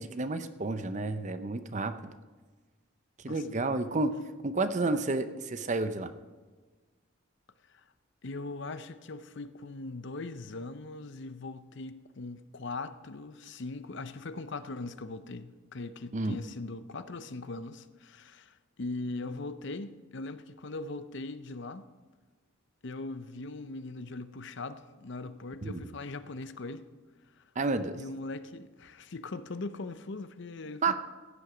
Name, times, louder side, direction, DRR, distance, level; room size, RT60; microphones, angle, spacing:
voice 1, 0.0-2.1 3.2-4.1 4.4-6.1 16.1-16.4 25.6-25.8 27.6-28.0 30.8-30.9, right 3 dB, 35° right, 0.6 m, -31 dB
voice 2, 8.2-21.8 22.8-26.9 27.4-27.5 27.9-30.9, left 3 dB, 55° left, 0.7 m, -40 dB
16.0 x 9.5 x 5.0 m
head